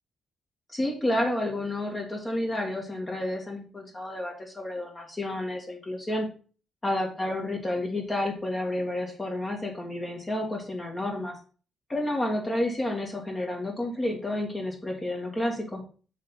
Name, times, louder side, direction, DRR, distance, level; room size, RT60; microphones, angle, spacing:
voice 1, 0.7-6.3 6.8-11.3 11.9-15.8, left 1 dB, 25° left, 0 dB, 2.0 m, -30 dB
7.3 x 3.6 x 5.6 m, 0.39 s
cardioid pair, 95°, 0 cm